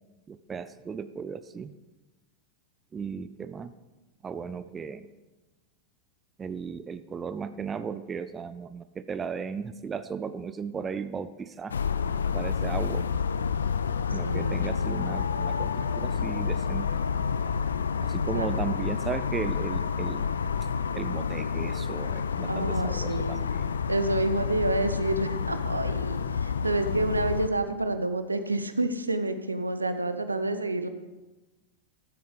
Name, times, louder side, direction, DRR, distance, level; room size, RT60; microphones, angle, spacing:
voice 1, 0.3-1.7 2.9-3.7 4.2-5.1 6.4-11.8 12.3-13.1 14.1-16.9 18.0-20.3 20.9-23.6, right 6 dB, 20° right, 13 dB, 0.5 m, -36 dB
sound 1, 11.7-27.5, left 6 dB, 70° left, 0.5 m, -29 dB
voice 2, 14.2-14.7 18.3-18.5 22.5-23.4 23.9-30.9, right 2 dB, 80° right, 10 dB, 0.7 m, -29 dB
14.0 x 7.9 x 5.0 m, 1.1 s
figure-of-eight pair, 90°, 0 cm